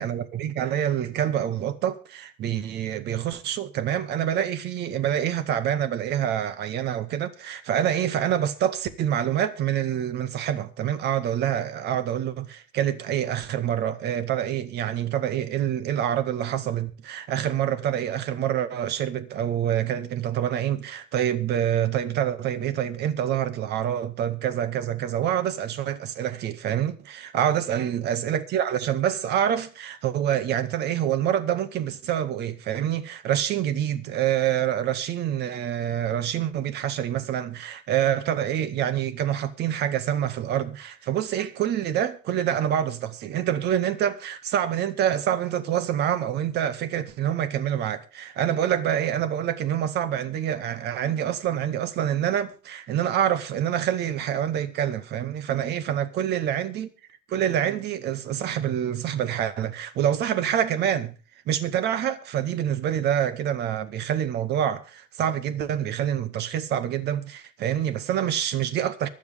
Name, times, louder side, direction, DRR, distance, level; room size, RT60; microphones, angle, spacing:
voice 1, 0.0-56.9 57.3-61.1 61.5-69.1, right 10 dB, 55° right, 2.0 m, -26 dB
24.5 x 8.1 x 3.5 m
cardioid pair, 120°, 20 cm